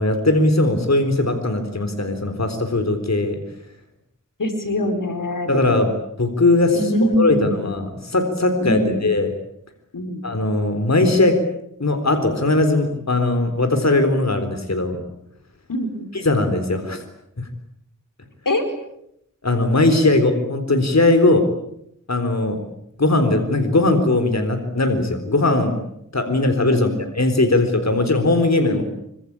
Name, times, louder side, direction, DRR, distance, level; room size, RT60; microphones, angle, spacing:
voice 1, 0.0-3.4 5.5-9.3 10.2-11.4 11.8-15.0 16.1-17.0 17.4-17.5 19.4-21.5 22.1-22.6 23.0-25.8 26.1-28.9, left 2 dB, 55° left, 7 dB, 4.1 m, -19 dB
voice 2, 4.4-5.6 6.7-7.7 8.6-9.0 9.9-10.2 15.7-16.1 18.4-18.6 26.8-26.9 28.7-28.8, left 1 dB, 85° left, 6 dB, 5.1 m, -23 dB
26.0 x 25.0 x 8.9 m, 0.77 s
wide cardioid pair, 65°, 31 cm